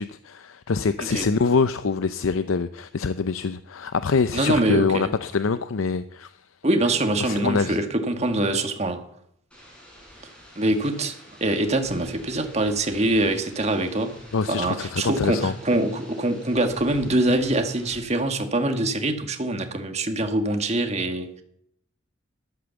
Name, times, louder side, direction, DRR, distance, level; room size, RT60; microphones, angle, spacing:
voice 1, 0.0-6.3 7.2-7.8 14.3-15.5, left 4 dB, 85° left, 0.6 m, -24 dB
voice 2, 4.3-5.1 6.6-9.0 10.6-11.1 11.4-14.1 14.5-21.3, right 1 dB, 35° right, 1.7 m, -24 dB
sound 1, 9.5-18.0, equal, 5° left, 6.8 m, -48 dB
14.0 x 12.0 x 7.1 m
head